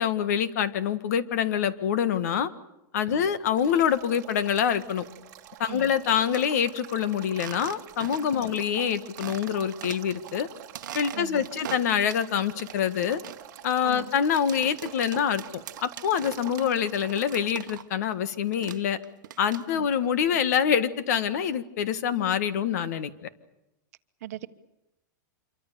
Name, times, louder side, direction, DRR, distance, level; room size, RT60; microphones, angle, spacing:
voice 1, 0.0-2.5 2.9-5.0 5.6-10.5 10.9-13.2 13.6-19.0 19.4-23.3, left 8 dB, 55° left, 13 dB, 1.6 m, -26 dB
Male speech man speaking / Stream / Trickle dribble, 3.6-17.5, right 12 dB, 30° right, 2.8 m, -47 dB
sound 1, 5.7-6.4 7.3-8.4 8.7-8.8 9.2-10.3 10.7-12.3 12.6-18.1 18.3-19.9, right 12 dB, 80° right, 1.0 m, -42 dB
voice 2, 11.1-11.5 13.8-14.1 19.7-19.9 24.2-24.5, right 13 dB, 55° right, 10 dB, 1.3 m, -39 dB
27.0 x 23.5 x 6.9 m, 0.90 s
supercardioid pair, 175°, 10 cm